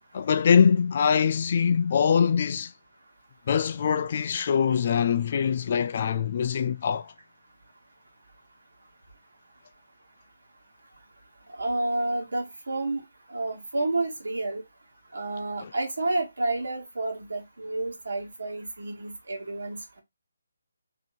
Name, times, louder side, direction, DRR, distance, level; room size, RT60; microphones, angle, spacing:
voice 1, 0.1-2.7 3.5-7.1 15.6-15.7, left 7 dB, 40° left, 0.3 m, -23 dB
voice 2, 11.6-13.0 13.3-14.6 15.1-20.0, right 2 dB, 60° right, 1.6 m, -30 dB
3.5 x 2.9 x 3.8 m
figure-of-eight pair, 145°, 0 cm